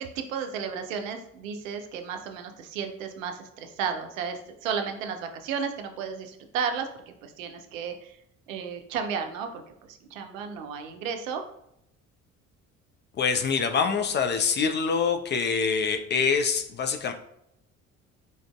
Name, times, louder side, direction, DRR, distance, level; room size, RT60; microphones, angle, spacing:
voice 1, 0.0-8.2 8.5-9.6 9.9-11.4, right 6 dB, 80° right, 5 dB, 0.5 m, -33 dB
voice 2, 13.2-17.1, left 5 dB, 30° left, 6 dB, 0.4 m, -25 dB
3.8 x 2.5 x 2.2 m, 0.76 s
figure-of-eight pair, 50°, 39 cm